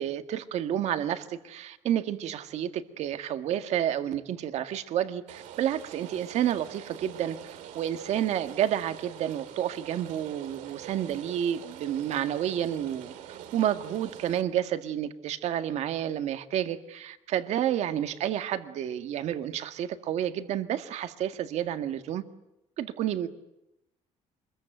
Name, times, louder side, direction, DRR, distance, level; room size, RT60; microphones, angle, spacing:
voice 1, 0.0-22.2 22.8-23.3, right 10 dB, 65° right, 9 dB, 1.8 m, -30 dB
Rain, 5.3-14.4, right 10 dB, 90° right, 2.5 m, -45 dB
25.5 x 21.5 x 9.0 m, 0.89 s
cardioid pair, 140°, 12 cm